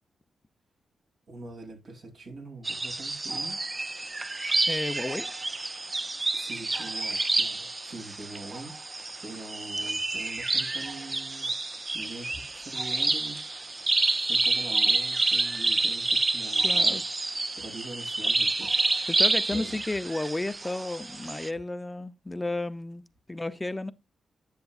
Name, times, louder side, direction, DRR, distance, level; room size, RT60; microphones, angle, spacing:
voice 1, 1.3-3.6 6.3-11.5 11.9-13.4 14.2-17.0 17.3-18.8 19.5-19.8, right 2 dB, 65° right, 3.0 m, -43 dB
sound 1, 2.6-21.5, right 2 dB, 30° right, 0.4 m, -28 dB
voice 2, 4.7-5.3 16.6-17.0 19.1-23.0 23.3-23.9, left 2 dB, 20° left, 0.5 m, -32 dB
10.5 x 6.8 x 2.4 m
cardioid pair, 70°, 0 cm